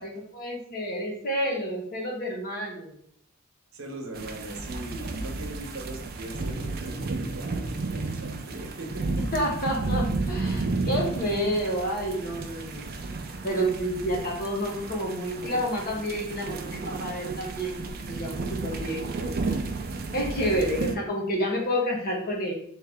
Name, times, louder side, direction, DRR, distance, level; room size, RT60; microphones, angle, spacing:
voice 1, 0.0-2.9 9.3-12.9 13.4-19.5 20.1-22.5, equal, 45° left, 0 dB, 1.0 m, -29 dB
voice 2, 3.7-9.1, right 1 dB, 75° right, 2 dB, 0.9 m, -40 dB
sound 1, 4.1-21.0, right 3 dB, 45° right, 0.4 m, -32 dB
3.7 x 3.2 x 3.4 m, 0.66 s
head